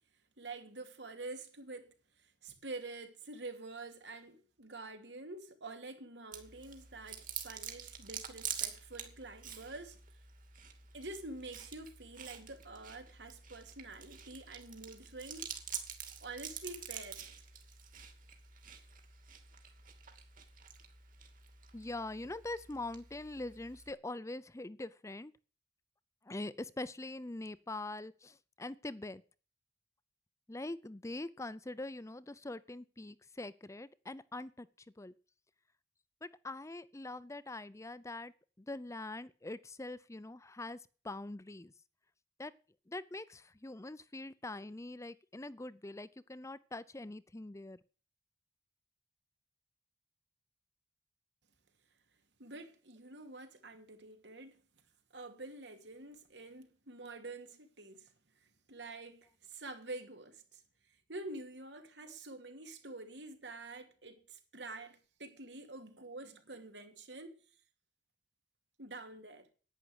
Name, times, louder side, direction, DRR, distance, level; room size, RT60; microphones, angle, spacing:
voice 1, 0.4-10.0 10.9-15.6 16.2-17.2 52.4-54.6 55.1-58.1 58.4-60.6 61.1-67.4 68.8-69.5, right 2 dB, 80° right, 2.7 m, -47 dB
Chewing mastication, 6.3-23.9, right 8 dB, 50° right, 2.5 m, -47 dB
voice 2, 21.7-25.3 26.3-29.2 30.5-34.7 35.0-35.1 36.2-38.3 38.6-40.8 41.0-41.7 42.4-42.5 42.9-47.8, left 2 dB, 15° left, 0.6 m, -43 dB
11.0 x 9.8 x 8.0 m
head